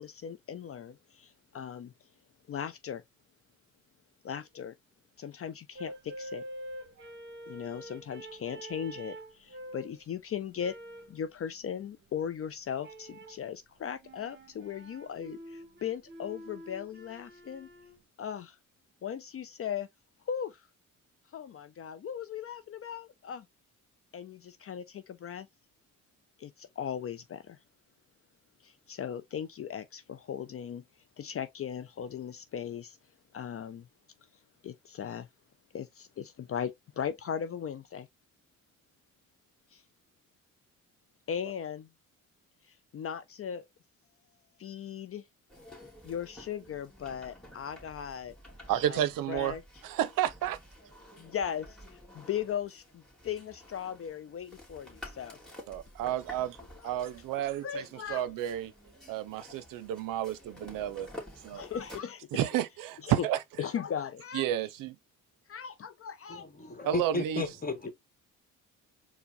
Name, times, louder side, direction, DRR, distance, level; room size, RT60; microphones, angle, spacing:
voice 1, 0.0-1.9 2.5-3.0 4.2-4.8 5.2-6.4 7.5-10.8 11.1-17.7 18.2-18.6 19.0-19.9 20.2-20.7 21.3-23.5 24.1-25.5 26.4-27.6 28.6-30.8 31.2-33.0 33.3-33.9 34.6-35.3 35.7-38.1 39.7-39.8 41.3-41.9 42.6-43.7 44.6-45.3 46.0-48.4 48.9-49.0 49.3-49.6 51.2-55.4 56.8-56.9 57.6-58.3 61.5-62.5 63.0-63.3 63.6-64.5 65.5-66.5, left 8 dB, 45° left, 0.5 m, -38 dB
sound 1, 5.7-10.0 10.6-11.2 12.8-13.4 14.0-18.0, right 1 dB, 35° right, 1.1 m, -46 dB
sound 2, 45.5-62.0, left 1 dB, ahead, 2.0 m, -51 dB
voice 2, 48.7-49.5 49.8-50.6 55.7-56.6 56.8-58.7 59.1-61.1 61.4-61.6 62.3-63.4 64.3-65.0 66.8-67.5, right 12 dB, 75° right, 0.6 m, -31 dB
voice 3, 66.3-67.9, left 2 dB, 25° left, 1.4 m, -34 dB
4.4 x 2.2 x 4.0 m
supercardioid pair, 65°, 33 cm